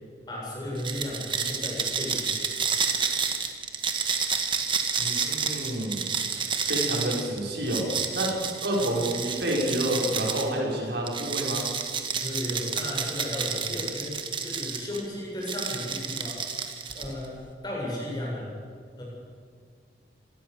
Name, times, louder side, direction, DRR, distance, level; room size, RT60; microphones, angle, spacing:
voice 1, 0.3-2.3 12.2-14.1 14.4-16.4 16.9-18.5 19.0-19.1, left 1 dB, 25° left, -4 dB, 7.5 m, -34 dB
sound 1, 0.8-10.5 11.1-15.0 15.4-17.2, right 6 dB, 25° right, 1.6 m, -30 dB
voice 2, 4.9-6.0 6.7-7.9 8.1-8.3 8.6-11.6, right 1 dB, 65° right, -2 dB, 6.2 m, -28 dB
25.5 x 19.0 x 7.0 m, 2.1 s
head